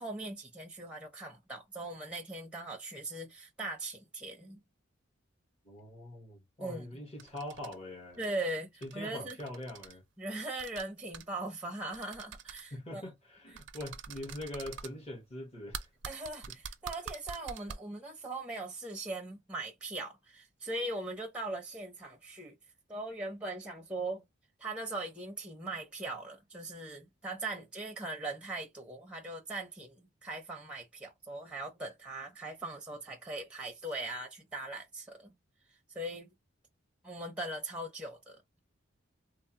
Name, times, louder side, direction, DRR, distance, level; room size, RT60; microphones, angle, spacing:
voice 1, 0.0-4.6 6.6-7.0 8.2-9.4 10.2-13.0 16.0-22.6 22.9-24.2 24.6-35.3 35.9-36.3 37.0-38.6, right 2 dB, 5° right, 0.6 m, -40 dB
voice 2, 5.6-8.2 8.8-10.0 12.7-15.9 16.5-16.6, left 1 dB, 30° left, 1.2 m, -43 dB
sound 1, 7.2-7.7 8.1-8.3 8.8-8.9 9.2-9.9 10.6-10.8 11.1-11.2 11.9-12.6 13.6-14.9 15.7-17.7, right 7 dB, 60° right, 0.4 m, -44 dB
3.2 x 2.0 x 2.8 m
head